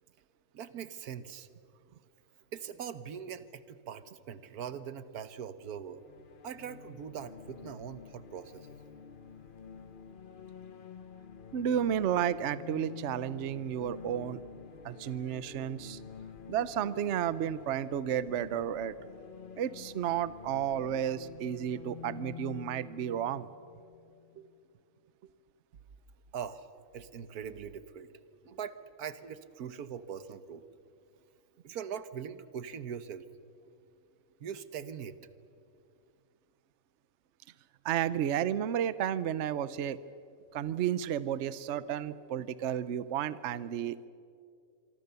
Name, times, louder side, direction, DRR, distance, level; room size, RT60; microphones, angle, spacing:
voice 1, 0.5-1.5 2.5-6.0 6.4-8.7 26.3-26.7 26.9-28.1 28.4-30.6 31.6-33.3 34.4-35.2, right 8 dB, 90° right, 13 dB, 1.5 m, -41 dB
sound 1, 5.9-24.5, left 7 dB, 40° left, 0.9 m, -49 dB
voice 2, 11.5-14.4 14.8-16.0 16.5-18.9 19.6-23.5 37.8-40.0 40.5-44.1, right 10 dB, 60° right, 16 dB, 0.9 m, -32 dB
26.0 x 24.5 x 6.9 m, 2.4 s
omnidirectional pair, 1.6 m